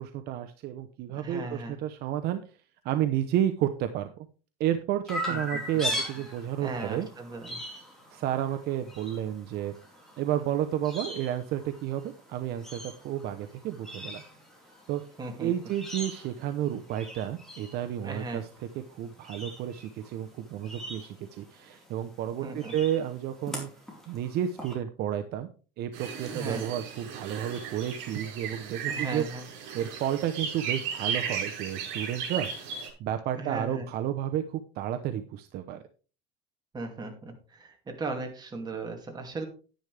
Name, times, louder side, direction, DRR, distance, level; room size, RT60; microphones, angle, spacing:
voice 1, 0.0-2.4 2.8-4.3 4.6-7.1 8.1-9.7 10.2-14.2 14.9-15.0 15.4-18.5 18.9-23.7 24.1-25.5 25.8-29.2 29.7-32.5 33.0-35.8, right 11 dB, 55° right, 7 dB, 0.8 m, -31 dB
voice 2, 1.1-1.8 5.3-5.6 6.6-7.6 15.2-15.5 18.0-18.4 22.4-22.8 26.3-26.6 28.9-29.5 33.4-33.9 36.7-39.5, right 3 dB, 20° right, 3 dB, 2.5 m, -37 dB
Chirp tweet, 5.1-24.7, equal, ahead, 4.1 m, -41 dB
sound 1, 25.9-32.9, right 7 dB, 70° right, 5.8 m, -35 dB
11.0 x 10.0 x 3.4 m, 0.36 s
cardioid pair, 140°, 20 cm